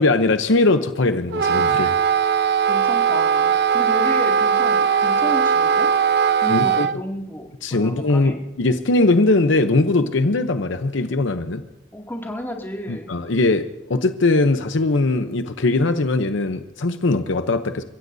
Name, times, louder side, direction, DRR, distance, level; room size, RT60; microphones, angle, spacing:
voice 1, 0.0-1.9 6.5-6.9 7.6-11.6 12.9-13.6 13.9-17.8, left 2 dB, 70° left, 9 dB, 0.8 m, -20 dB
Wind instrument woodwind instrument, 1.3-7.0, right 7 dB, 60° right, 0.6 m, -19 dB
voice 2, 2.7-5.9 6.4-8.4 11.9-13.1, equal, 10° left, 0 dB, 2.4 m, -32 dB
29.5 x 15.5 x 2.7 m, 1.0 s
head